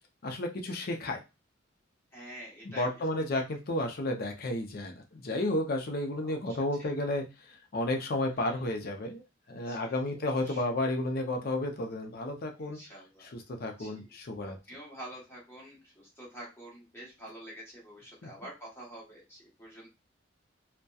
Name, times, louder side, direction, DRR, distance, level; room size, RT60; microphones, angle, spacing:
voice 1, 0.2-1.2 2.6-7.2 7.7-9.2 9.5-12.8 13.2-14.6 18.2-18.3, left 1 dB, 50° left, 3 dB, 0.5 m, -32 dB
voice 2, 2.1-2.9 6.2-6.4 6.8-7.0 8.4-8.7 9.7-10.6 12.6-13.3 13.8-14.1 14.4-19.9, right 1 dB, 15° left, -4 dB, 0.9 m, -48 dB
2.7 x 2.1 x 2.2 m, 0.26 s
head